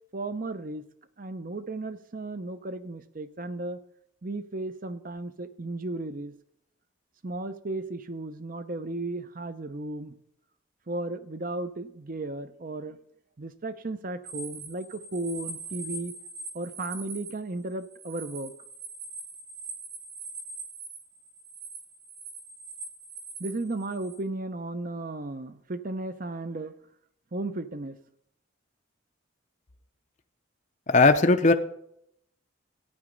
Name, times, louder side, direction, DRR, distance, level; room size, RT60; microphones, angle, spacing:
voice 1, 0.1-0.8 1.2-3.8 4.2-6.3 7.2-10.1 10.9-13.0 13.4-16.1 16.5-18.5 23.4-26.7 27.3-28.0, right 2 dB, 40° right, 12 dB, 0.7 m, -35 dB
sound 1, 14.2-24.2, right 3 dB, 75° right, 3.6 m, -42 dB
voice 2, 30.9-31.5, left 3 dB, 35° left, 8 dB, 0.6 m, -18 dB
14.0 x 9.7 x 5.2 m, 0.73 s
head